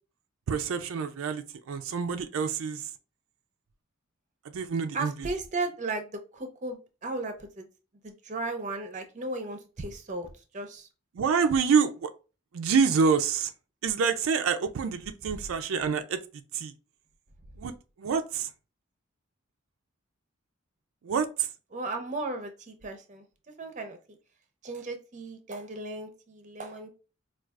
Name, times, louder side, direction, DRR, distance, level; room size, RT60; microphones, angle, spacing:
voice 1, 0.5-2.8 4.5-5.1 11.2-12.1 12.5-13.5 13.8-16.2 16.5-16.7 17.6-17.7 18.0-18.5 21.0-21.5, right 6 dB, 80° right, 0.4 m, -27 dB
voice 2, 4.9-7.7 8.0-10.9 15.3-15.4 21.7-23.2 23.6-24.2 24.6-26.9, right 2 dB, 35° right, 0.6 m, -36 dB
4.5 x 2.4 x 2.4 m
head